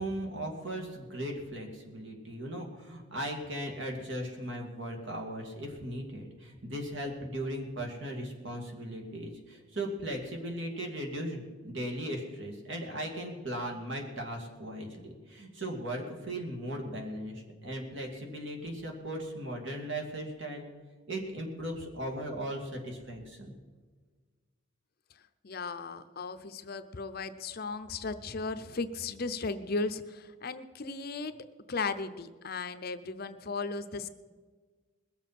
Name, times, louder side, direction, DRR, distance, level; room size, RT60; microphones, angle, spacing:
voice 1, 0.0-20.7 21.1-23.5, right 1 dB, 60° right, 2 dB, 2.4 m, -37 dB
voice 2, 25.4-31.4 31.7-34.1, left 4 dB, 45° left, 10 dB, 0.6 m, -36 dB
21.0 x 7.2 x 5.9 m, 1.5 s
head